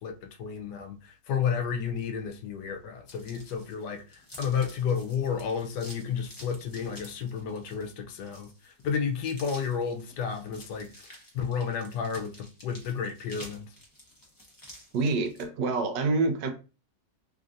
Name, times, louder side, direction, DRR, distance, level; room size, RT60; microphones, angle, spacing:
voice 1, 0.0-13.7, left 6 dB, 75° left, 1.1 m, -32 dB
sound 1, 3.1-15.5, left 1 dB, 20° left, 0.5 m, -50 dB
voice 2, 14.9-16.5, right 3 dB, 85° right, 1.3 m, -26 dB
3.3 x 2.6 x 2.4 m
omnidirectional pair, 1.9 m